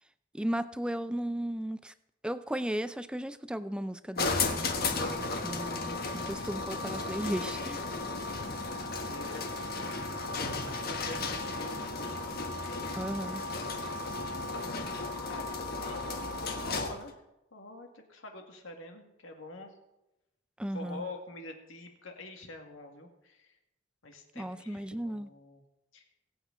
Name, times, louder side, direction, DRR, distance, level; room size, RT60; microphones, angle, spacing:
voice 1, 0.3-1.9 2.2-7.8 13.0-13.4 20.6-21.0 24.4-25.3, equal, 5° right, 12 dB, 0.4 m, -35 dB
sound 1, 4.2-17.1, left 3 dB, 50° left, 1.3 m, -34 dB
voice 2, 8.7-9.9 10.5-12.1 14.1-14.6 15.3-16.1 16.5-17.2 17.5-19.7 20.7-23.5 24.0-25.6 25.9-26.0, left 2 dB, 85° left, 3 dB, 2.0 m, -46 dB
22.0 x 8.1 x 3.9 m, 0.93 s
head